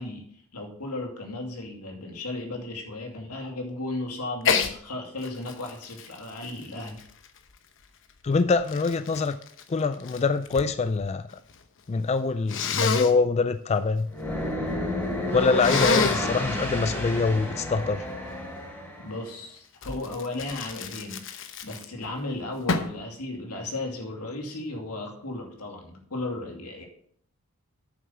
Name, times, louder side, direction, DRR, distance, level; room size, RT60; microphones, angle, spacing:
voice 1, 0.0-7.0 15.6-16.6 19.0-21.2 21.6-26.9, left 2 dB, 90° left, 2 dB, 2.4 m, -35 dB
Sneeze, 4.4-4.7 5.2-7.6 8.3-10.7 11.0-11.6 12.5-13.1 15.6-16.3 19.8-22.1 22.7-23.0, left 5 dB, 60° left, 0.9 m, -29 dB
voice 2, 8.2-9.4 9.7-11.3 11.9-14.1 15.3-18.1, left 4 dB, 30° left, 12 dB, 0.3 m, -24 dB
sound 1, 14.1-19.2, left 1 dB, 10° left, 3.1 m, -30 dB
8.6 x 7.4 x 5.7 m, 0.62 s
head